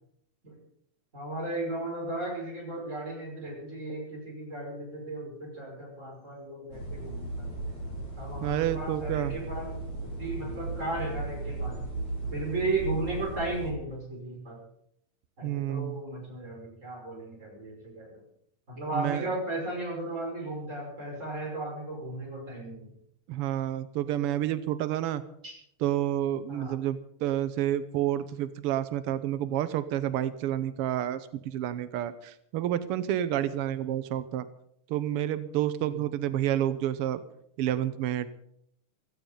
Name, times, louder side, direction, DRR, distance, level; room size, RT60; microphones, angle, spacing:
voice 1, 1.1-7.7 8.2-9.8 10.2-11.8 12.3-14.6 15.4-18.2 18.7-22.9 25.4-25.6 26.5-26.8 35.8-36.0, right 2 dB, 20° right, -1 dB, 6.1 m, -35 dB
sound 1, 6.7-13.7, right 2 dB, 40° left, 6.2 m, -36 dB
voice 2, 8.4-9.3 15.4-16.0 18.9-19.2 23.3-25.2 25.8-34.4 34.9-37.2 37.6-38.3, right 12 dB, 85° right, 13 dB, 1.2 m, -29 dB
16.5 x 14.5 x 5.3 m, 0.70 s
omnidirectional pair, 3.5 m